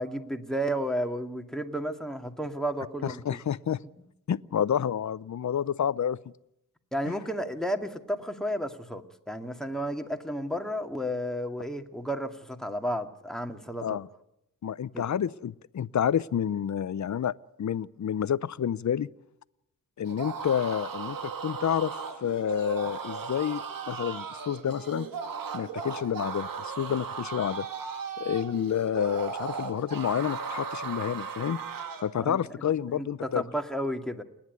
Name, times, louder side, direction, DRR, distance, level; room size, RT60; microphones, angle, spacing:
voice 1, 0.0-3.4 6.9-14.0 14.9-15.1 32.2-34.2, equal, ahead, 4 dB, 2.2 m, -32 dB
voice 2, 3.0-3.8 4.3-6.2 13.8-14.1 14.6-17.3 17.6-19.1 20.0-25.1 25.5-27.7 28.2-31.6 32.0-33.4, left 9 dB, 55° left, 18 dB, 0.7 m, -29 dB
sound 1, 20.1-32.2, right 5 dB, 80° right, 1.7 m, -36 dB
29.0 x 10.5 x 9.4 m, 0.84 s
cardioid pair, 60°, 34 cm